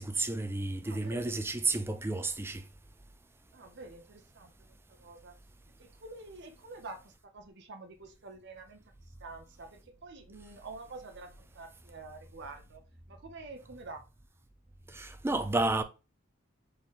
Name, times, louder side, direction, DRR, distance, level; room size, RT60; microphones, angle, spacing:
voice 1, 0.0-2.6 14.9-15.8, right 2 dB, 10° right, 0.4 m, -31 dB
voice 2, 0.8-1.4 3.5-4.5 4.9-5.3 5.8-12.8 13.1-14.0, right 3 dB, 55° right, 0.7 m, -48 dB
4.0 x 3.9 x 3.1 m
head